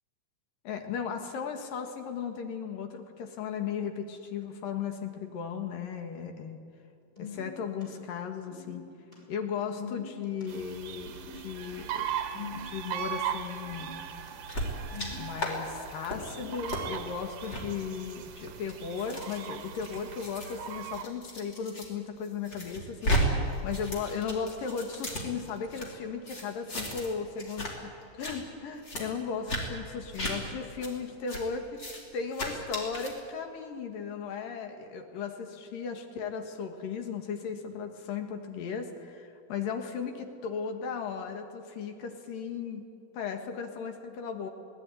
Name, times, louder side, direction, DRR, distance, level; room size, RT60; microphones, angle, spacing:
voice 1, 0.6-6.6 7.2-8.9 9.3-12.1 12.5-13.9 15.2-31.8 32.1-42.8 43.1-44.5, left 6 dB, 75° left, 5 dB, 3.3 m, -36 dB
sound 1, 7.2-7.9 8.3-9.2 9.6-10.4 11.1-11.4 11.7-11.8 12.0-13.0 13.6-14.3 14.8-15.6 16.2-16.6, left 5 dB, 10° left, 6.7 m, -44 dB
sound 2, 10.5-21.0, right 9 dB, 65° right, 2.6 m, -39 dB
sound 3, 14.5-15.1 15.4-15.5 15.9-16.2 16.7-16.8 17.4-17.6 18.3-21.9 22.2-23.2 23.5-25.9 26.3-27.1 27.4-27.7 28.0-28.3 28.8-29.0 29.5-29.6 30.1-30.3 30.8-30.9 31.3-31.4 31.7-32.0 32.3-33.1, equal, 30° left, 4.2 m, -34 dB
21.0 x 18.5 x 9.7 m, 2.5 s
omnidirectional pair, 4.0 m